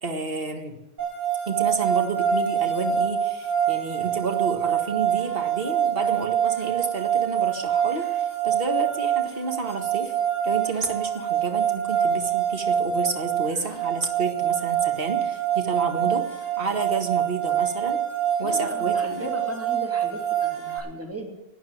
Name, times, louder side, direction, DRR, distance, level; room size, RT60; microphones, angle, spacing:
voice 1, 0.0-0.8 1.5-10.2 10.4-18.0 18.4-19.3, right 4 dB, 45° right, 5 dB, 2.0 m, -30 dB
sound 1, 1.0-20.8, right 9 dB, 75° right, 6.8 m, -25 dB
voice 2, 18.4-21.3, right 1 dB, 10° right, 2 dB, 2.7 m, -35 dB
12.0 x 9.5 x 9.3 m, 1.0 s
omnidirectional pair, 1.3 m